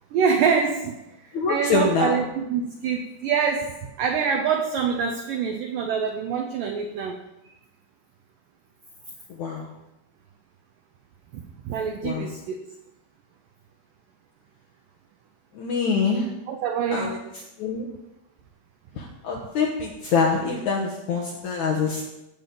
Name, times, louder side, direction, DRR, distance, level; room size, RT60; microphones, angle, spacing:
voice 1, 0.1-1.0 1.2-7.2 11.3-12.7 16.5-17.2, right 6 dB, 90° right, 4 dB, 1.9 m, -25 dB
voice 2, 1.3-2.2 9.4-9.7 12.0-12.3 15.5-16.3 16.9-17.2 17.6-17.9 19.0-22.0, left 5 dB, 70° left, -2 dB, 1.8 m, -25 dB
16.5 x 7.1 x 3.9 m, 0.96 s
omnidirectional pair, 4.9 m